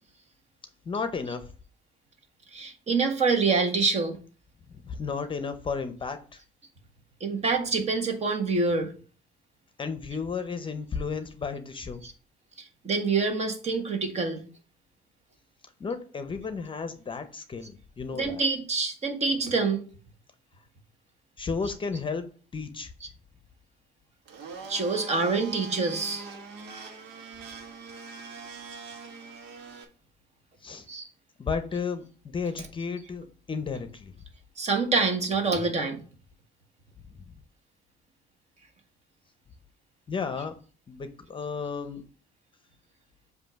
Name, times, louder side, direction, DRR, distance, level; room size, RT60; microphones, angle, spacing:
voice 1, 0.9-1.5 4.7-6.4 9.8-12.0 15.8-18.4 21.4-22.9 30.6-30.9 31.4-34.1 40.1-40.6 40.9-42.0, left 5 dB, 30° left, 0.7 m, -33 dB
voice 2, 2.5-4.2 7.2-8.9 12.0-12.1 12.6-14.4 18.1-19.8 21.6-21.7 23.0-23.1 24.7-26.3 30.9-31.1 32.6-32.7 34.6-36.0, right 4 dB, 40° right, 1.5 m, -26 dB
Domestic sounds home sounds, 24.3-29.8, right 4 dB, 80° right, 1.3 m, -43 dB
7.6 x 2.8 x 5.7 m
cardioid pair, 110°, 17 cm